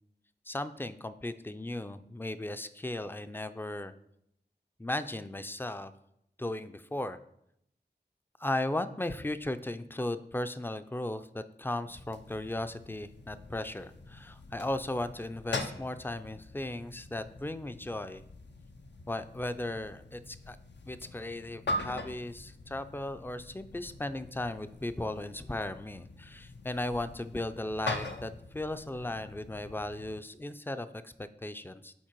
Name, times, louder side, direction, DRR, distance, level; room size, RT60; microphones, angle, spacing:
voice 1, 0.5-3.9 4.8-5.9 6.4-7.2 8.4-18.2 19.1-20.6 20.9-31.9, left 1 dB, 10° left, 11 dB, 0.4 m, -36 dB
sound 1, 11.9-30.2, left 2 dB, 75° left, 0.6 m, -43 dB
7.3 x 4.6 x 4.5 m, 0.77 s
wide cardioid pair, 50°, 18 cm